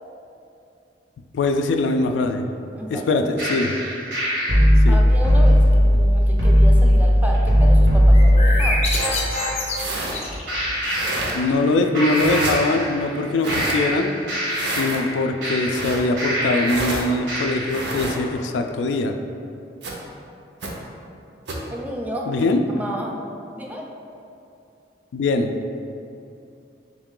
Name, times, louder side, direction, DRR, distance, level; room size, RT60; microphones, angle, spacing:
voice 1, 1.3-2.5 2.9-3.7 4.8-5.0 11.3-14.1 14.6-19.2 22.3-22.6 25.1-25.5, left 2 dB, 85° left, 6 dB, 0.3 m, -22 dB
voice 2, 2.7-3.1 4.9-8.9 21.7-23.2 23.5-23.8, equal, 10° right, -1 dB, 0.4 m, -31 dB
sound 1, 3.4-9.5 10.5-11.7 11.9-13.2 13.5-16.9 17.3-17.9, equal, 85° right, 1.4 m, -18 dB
sound 2, 8.1-10.8, left 2 dB, 40° left, 0.6 m, -27 dB
sound 3, 8.9-9.1 9.7-10.2 10.9-11.3 12.1-12.6 13.4-13.7 14.5-15.0 15.7-16.0 16.6-17.0 17.7-18.2 19.8-19.9 20.6-20.7 21.5-21.6, right 2 dB, 70° right, 0.6 m, -29 dB
3.7 x 3.1 x 3.7 m, 2.7 s
head